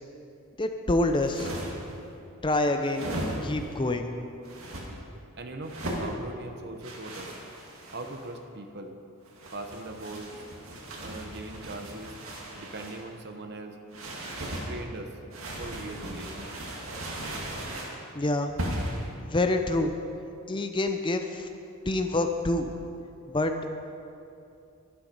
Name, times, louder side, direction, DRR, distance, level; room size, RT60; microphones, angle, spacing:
voice 1, 0.6-1.5 2.4-3.1 3.4-4.1 18.1-18.5 19.2-19.9 20.5-21.5 21.9-22.7 23.3-23.5, left 2 dB, 20° left, 6 dB, 0.6 m, -26 dB
sound 1, 1.1-1.9 2.8-3.7 4.4-4.9 5.6-6.1 6.8-8.3 9.2-13.0 13.9-14.7 15.3-18.0 18.6-19.0, right 1 dB, 65° right, 2.1 m, -37 dB
voice 2, 5.4-7.3 7.9-8.9 9.5-10.3 11.0-12.2 12.5-13.8 14.4-15.2 15.6-16.6, right 2 dB, 50° right, 6 dB, 1.0 m, -40 dB
12.0 x 11.5 x 5.4 m, 2.6 s
head